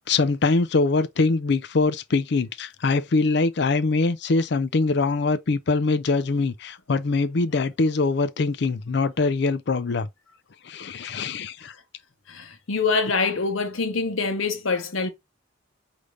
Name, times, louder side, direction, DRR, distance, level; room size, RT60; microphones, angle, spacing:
voice 1, 0.0-10.1 10.6-11.7, left 3 dB, 55° left, 0.5 m, -23 dB
voice 2, 12.3-15.1, left 4 dB, 85° left, 1.0 m, -25 dB
5.0 x 2.7 x 3.1 m
head